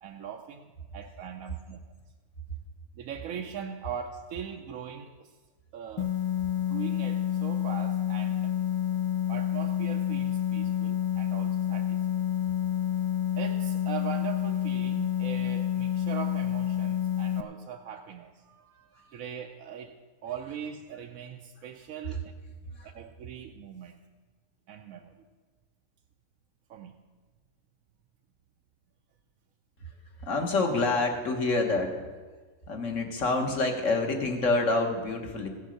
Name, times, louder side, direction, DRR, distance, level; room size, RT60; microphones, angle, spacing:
voice 1, 0.0-1.8 3.0-5.3 5.7-6.1 6.7-8.6 9.3-12.1 13.4-22.3 22.8-24.0 24.7-25.2 26.7-27.0, right 8 dB, 70° right, 3 dB, 1.0 m, -41 dB
sound 1, 6.0-17.4, left 10 dB, 30° left, 0.5 m, -29 dB
voice 2, 30.2-32.0 32.7-35.5, left 3 dB, 60° left, 4 dB, 1.7 m, -27 dB
16.0 x 7.2 x 6.4 m, 1.4 s
omnidirectional pair, 1.6 m